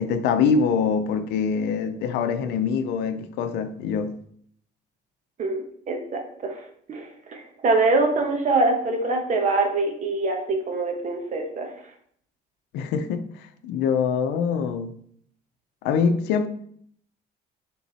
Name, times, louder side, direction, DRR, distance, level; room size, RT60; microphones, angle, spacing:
voice 1, 0.0-4.1 12.7-14.9 15.8-16.5, left 6 dB, 85° left, 0.6 m, -24 dB
voice 2, 5.9-6.6 6.9-11.7, right 3 dB, 45° right, 1.5 m, -24 dB
7.0 x 3.8 x 4.2 m
cardioid pair, 110°, 17 cm